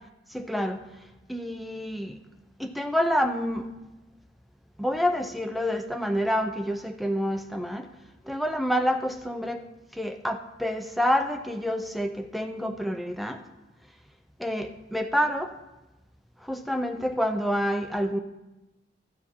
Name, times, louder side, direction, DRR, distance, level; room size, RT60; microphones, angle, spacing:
voice 1, 0.3-0.8 1.3-2.2 2.6-3.7 4.8-7.9 8.3-9.6 9.9-13.4 14.4-15.5 16.4-18.2, equal, ahead, 6 dB, 0.6 m, -28 dB
13.0 x 7.4 x 4.5 m, 1.0 s
head